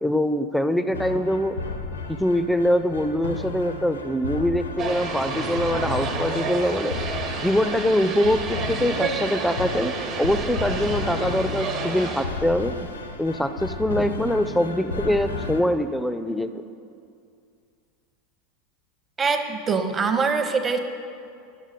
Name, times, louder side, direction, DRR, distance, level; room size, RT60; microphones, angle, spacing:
voice 1, 0.0-1.6 2.1-7.0 7.4-12.8 13.2-16.6, left 1 dB, 5° left, 11 dB, 0.4 m, -23 dB
sound 1, 0.9-15.6, left 3 dB, 90° left, 0.5 m, -33 dB
sound 2, 4.8-12.3, right 4 dB, 50° right, 0.9 m, -30 dB
voice 2, 19.2-20.8, right 5 dB, 25° right, 7 dB, 0.7 m, -23 dB
10.0 x 6.0 x 4.1 m, 2.4 s
figure-of-eight pair, 85°, 0 cm